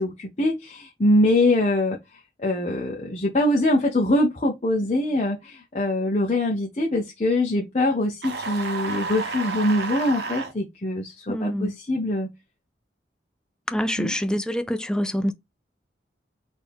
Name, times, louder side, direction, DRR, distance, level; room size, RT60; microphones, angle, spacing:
voice 1, 0.0-12.3 14.0-14.1, left 1 dB, 40° left, 0.7 m, -23 dB
sound 1, 8.2-10.5, right 4 dB, 70° right, 0.9 m, -31 dB
voice 2, 11.3-11.7 13.7-15.3, equal, 5° left, 0.3 m, -26 dB
4.4 x 2.7 x 3.4 m
head